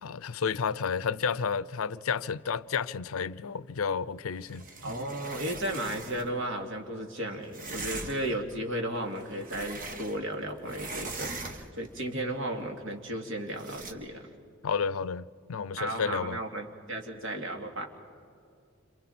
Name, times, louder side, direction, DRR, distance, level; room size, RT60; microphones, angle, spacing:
voice 1, 0.0-4.6 14.6-16.4, left 6 dB, 85° left, 0.5 m, -31 dB
sound 1, 4.4-6.3 7.5-8.4 9.0-10.4 10.6-11.9 13.6-13.9, right 3 dB, 40° right, 1.5 m, -41 dB
voice 2, 4.8-14.2 15.8-17.9, right 1 dB, 65° right, 2.7 m, -34 dB
29.0 x 27.0 x 4.3 m
head